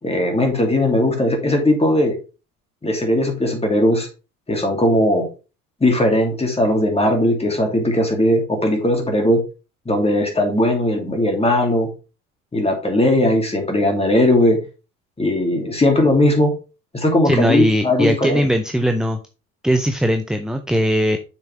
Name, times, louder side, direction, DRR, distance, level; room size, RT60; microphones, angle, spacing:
voice 1, 0.0-2.2 2.8-4.1 4.5-5.3 5.8-9.4 9.9-11.9 12.5-14.6 15.2-16.5 16.9-18.4, left 1 dB, 15° left, 2 dB, 2.7 m, -18 dB
voice 2, 17.2-19.2 19.6-21.2, equal, ahead, 7 dB, 0.5 m, -19 dB
6.7 x 6.1 x 3.3 m, 0.32 s
hypercardioid pair, 70°, 42 cm